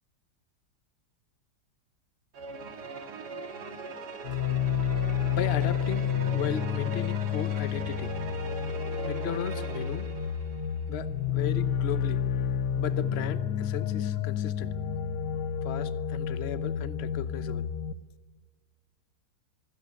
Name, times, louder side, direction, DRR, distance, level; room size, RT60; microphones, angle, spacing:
sound 1, 2.3-10.9, right 3 dB, 75° right, 2.4 m, -41 dB
sound 2, 4.2-17.9, left 8 dB, 85° left, 1.5 m, -30 dB
voice 1, 5.3-6.1 6.3-8.2 9.1-10.1 10.9-12.2 12.8-14.7 15.6-17.7, left 8 dB, 45° left, 13 dB, 1.0 m, -35 dB
24.5 x 14.0 x 9.6 m, 1.3 s
omnidirectional pair, 1.8 m